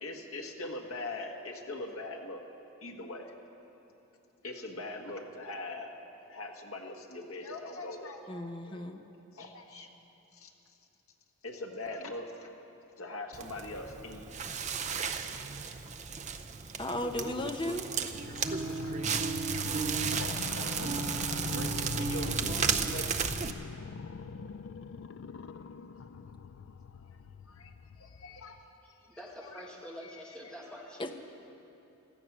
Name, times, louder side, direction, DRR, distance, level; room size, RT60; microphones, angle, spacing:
voice 1, 0.0-2.4 2.8-3.3 4.4-5.9 6.3-9.0 9.3-9.9 10.3-10.5 11.4-12.5 13.0-14.3 20.0-20.9 21.5-23.1 25.4-25.5 27.5-28.6 29.4-29.6 30.0-30.1 30.4-30.8, left 2 dB, 80° left, 1 dB, 1.6 m, -42 dB
voice 2, 8.3-9.0 16.8-17.8 31.0-31.1, left 1 dB, 20° left, 5 dB, 0.7 m, -35 dB
Crackle, 13.3-23.5, right 5 dB, 30° right, 0.5 m, -33 dB
sound 1, 18.1-28.6, left 5 dB, 60° left, 0.4 m, -42 dB
voice 3, 29.1-31.1, equal, 5° left, -3 dB, 1.7 m, -46 dB
16.0 x 13.5 x 6.1 m, 3.0 s
head